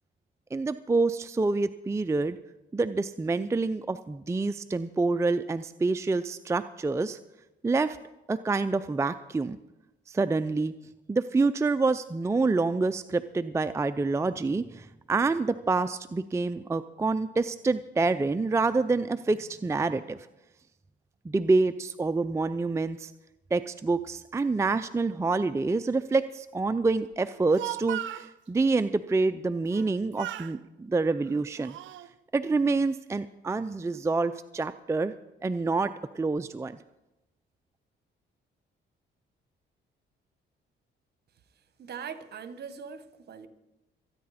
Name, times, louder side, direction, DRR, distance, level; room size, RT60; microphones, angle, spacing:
voice 1, 0.5-2.4 2.7-7.2 7.6-8.0 8.3-9.6 10.1-10.7 11.1-20.2 21.3-23.1 23.5-31.8 32.3-35.1 35.4-36.8, right 3 dB, 15° right, 11 dB, 0.4 m, -27 dB
Speech, 27.3-28.3 29.7-29.9 30.2-30.6 31.3-32.1, right 14 dB, 75° right, 0.6 m, -37 dB
voice 2, 41.8-43.5, right 7 dB, 55° right, 11 dB, 1.3 m, -41 dB
25.5 x 9.5 x 4.2 m, 0.98 s
cardioid pair, 90°, 20 cm